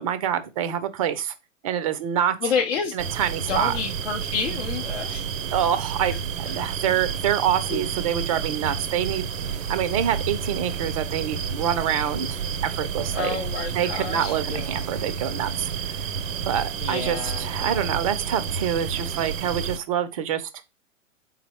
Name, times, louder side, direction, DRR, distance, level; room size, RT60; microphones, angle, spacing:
voice 1, 0.0-1.3 1.6-2.4 2.9-3.7 5.5-9.3 9.7-13.4 13.7-15.7 16.5-20.5, right 9 dB, 30° right, 0.4 m, -26 dB
voice 2, 2.4-2.9 3.4-5.3 7.7-7.9 13.1-14.7 16.8-17.8, left 6 dB, 60° left, 0.7 m, -29 dB
sound 1, 3.0-19.8, right 7 dB, 80° right, 0.5 m, -30 dB
3.8 x 2.0 x 4.1 m
figure-of-eight pair, 115°, 38 cm